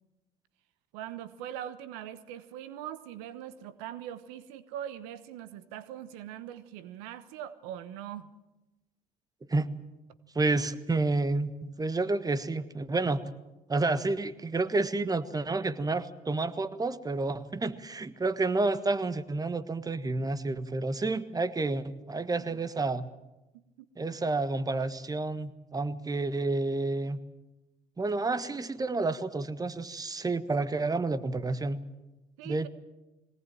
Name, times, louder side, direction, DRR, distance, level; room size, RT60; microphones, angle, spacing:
voice 1, 0.9-8.3 23.5-23.9 32.4-32.7, right 11 dB, 80° right, 14 dB, 1.1 m, -42 dB
voice 2, 10.3-11.5 11.8-13.2 13.7-23.1 24.0-27.2 28.0-31.8 32.4-32.7, right 3 dB, 20° right, 13 dB, 1.5 m, -30 dB
21.5 x 18.5 x 9.1 m, 1.0 s
hypercardioid pair, 65°, 17 cm